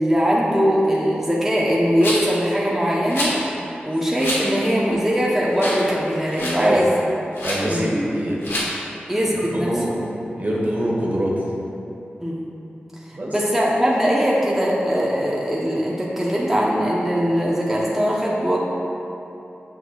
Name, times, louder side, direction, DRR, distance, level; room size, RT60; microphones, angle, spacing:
voice 1, 0.0-3.3 3.8-6.9 7.6-7.9 9.1-10.0 12.2-12.4 13.3-18.6, equal, 10° right, -5 dB, 0.8 m, -21 dB
Rattle, 2.0-2.4 3.1-3.4 4.2-4.4 4.9-5.0 5.5-5.9 6.1-6.6 7.3-7.6 8.4-8.7, left 1 dB, 85° left, 1.2 m, -26 dB
voice 2, 7.4-8.4 9.5-10.0 10.4-11.3 13.1-13.3, right 1 dB, 45° right, -4 dB, 1.2 m, -23 dB
6.6 x 6.3 x 2.4 m, 2.9 s
cardioid pair, 55°, 4 cm